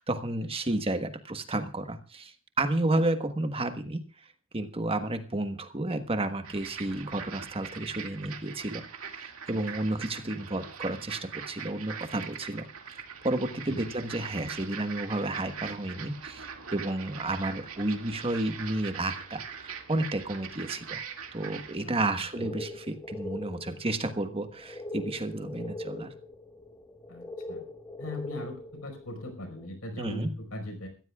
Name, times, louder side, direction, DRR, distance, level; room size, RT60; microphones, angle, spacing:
voice 1, 0.0-4.1 4.5-21.0 21.3-26.1 30.0-30.3, right 2 dB, 25° right, 8 dB, 1.3 m, -32 dB
sound 1, 6.4-21.8, right 7 dB, 70° right, 2.3 m, -42 dB
voice 2, 9.5-10.0 13.7-13.9 21.8-21.9 22.4-22.5 27.1-27.6 28.0-30.9, left 1 dB, 70° left, 5 dB, 5.0 m, -40 dB
sound 2, 16.6-16.8 17.4-17.5 17.6-17.7 18.9-19.3 19.8-20.1 20.5-20.8 21.5-21.7 22.0-29.7, left 1 dB, 15° left, 1.4 m, -42 dB
23.0 x 15.0 x 2.4 m, 0.36 s
head